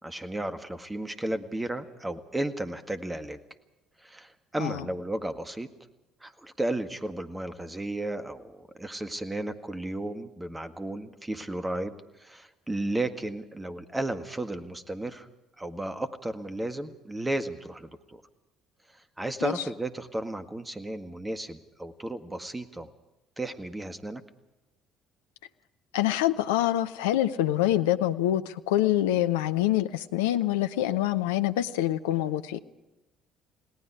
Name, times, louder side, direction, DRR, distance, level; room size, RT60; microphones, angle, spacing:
voice 1, 0.0-3.4 4.0-5.7 6.2-11.9 12.2-15.3 15.6-18.2 19.2-22.9 23.4-24.2, right 1 dB, 15° right, 9 dB, 1.8 m, -34 dB
voice 2, 25.9-32.6, left 13 dB, 70° left, 10 dB, 0.7 m, -25 dB
29.5 x 18.5 x 4.9 m, 1.0 s
figure-of-eight pair, 50°, 0 cm